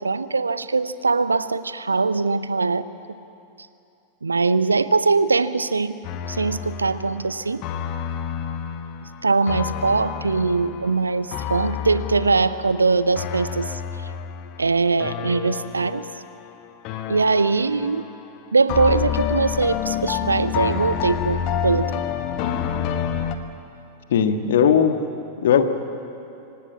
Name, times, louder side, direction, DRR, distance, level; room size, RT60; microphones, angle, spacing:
voice 1, 0.0-2.9 4.2-6.0 6.3-7.6 9.2-13.8 14.6-16.0 17.1-18.1 18.5-21.9, right 4 dB, 80° right, 15 dB, 0.7 m, -21 dB
sound 1, 6.0-16.5 16.8-18.3 18.7-23.3, left 9 dB, 40° left, 1.4 m, -29 dB
voice 2, 24.1-25.0 25.4-25.6, left 8 dB, 60° left, 8 dB, 1.5 m, -17 dB
26.0 x 17.0 x 8.7 m, 2.7 s
figure-of-eight pair, 90°, 0 cm